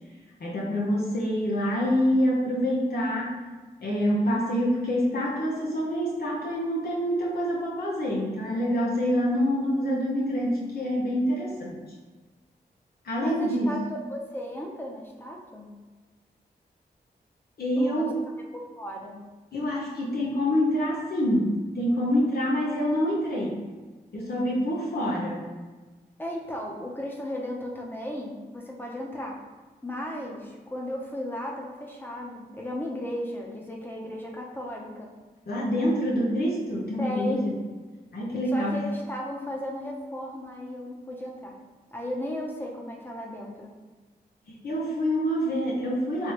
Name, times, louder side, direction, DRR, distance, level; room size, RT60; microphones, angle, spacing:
voice 1, 0.4-3.4 3.8-11.7 13.0-13.8 17.6-18.2 19.5-23.5 24.1-25.4 35.5-37.5 38.1-38.8 44.5-46.3, equal, 65° left, -4 dB, 0.8 m, -26 dB
voice 2, 13.2-13.8 14.1-15.7 17.8-18.1 18.5-19.2 26.2-29.4 29.8-35.1 37.0-37.5 38.5-41.6 41.9-43.7, equal, 10° left, -1 dB, 0.8 m, -35 dB
3.3 x 3.0 x 3.0 m, 1.3 s
cardioid pair, 50°, 17 cm